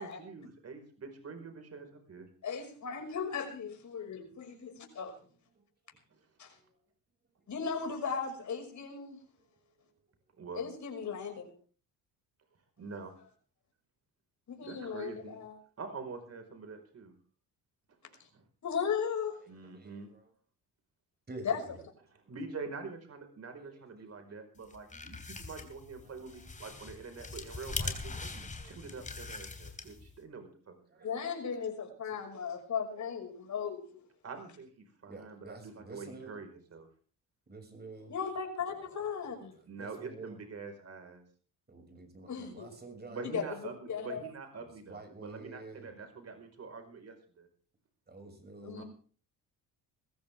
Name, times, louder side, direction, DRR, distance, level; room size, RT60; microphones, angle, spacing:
voice 1, 0.0-2.3 10.4-10.6 12.8-13.1 14.6-15.4 15.8-17.1 18.0-18.4 19.5-20.1 22.3-31.1 34.2-36.9 39.7-41.2 43.1-47.5 48.7-48.8, right 4 dB, 40° right, 6 dB, 5.0 m, -45 dB
voice 2, 2.4-5.2 6.4-6.5 7.5-9.2 10.6-11.5 14.5-15.6 18.6-19.3 21.4-21.6 31.0-33.8 38.1-39.5 42.3-42.7 43.2-43.4 43.9-44.2 48.6-48.8, left 6 dB, 50° left, 3 dB, 6.1 m, -36 dB
voice 3, 21.3-21.8 23.6-23.8 28.6-28.7 30.9-31.1 35.1-36.3 37.5-38.1 39.8-40.4 41.7-43.3 44.9-45.9 48.1-48.8, right 3 dB, 25° right, 5 dB, 6.5 m, -48 dB
sound 1, 24.6-30.2, left 3 dB, 20° left, 3.2 m, -42 dB
21.0 x 15.0 x 3.6 m, 0.42 s
cardioid pair, 90°, 37 cm